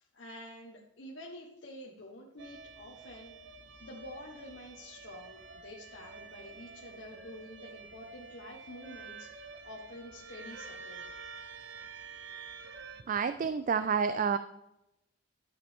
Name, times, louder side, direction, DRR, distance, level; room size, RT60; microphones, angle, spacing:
voice 1, 0.1-3.3 3.8-11.9, left 1 dB, 65° left, -2 dB, 1.1 m, -49 dB
sound 1, 2.4-13.0, right 4 dB, 65° right, 0.8 m, -48 dB
voice 2, 13.1-14.4, right 6 dB, 40° right, 11 dB, 0.3 m, -29 dB
11.5 x 7.6 x 3.6 m, 0.87 s
head